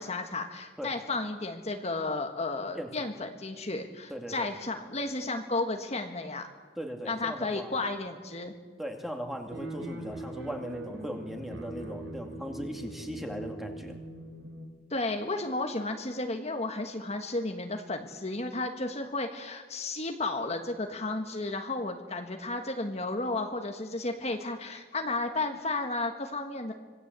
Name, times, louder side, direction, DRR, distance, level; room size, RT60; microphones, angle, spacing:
voice 1, 0.0-6.5 7.1-8.5 14.9-26.7, left 2 dB, 35° left, 4 dB, 1.5 m, -33 dB
voice 2, 4.1-4.5 6.8-7.8 8.8-14.0, equal, ahead, 3 dB, 2.4 m, -38 dB
sound 1, 9.5-14.7, right 1 dB, 65° right, 4.9 m, -41 dB
26.0 x 19.5 x 8.2 m, 1.5 s
head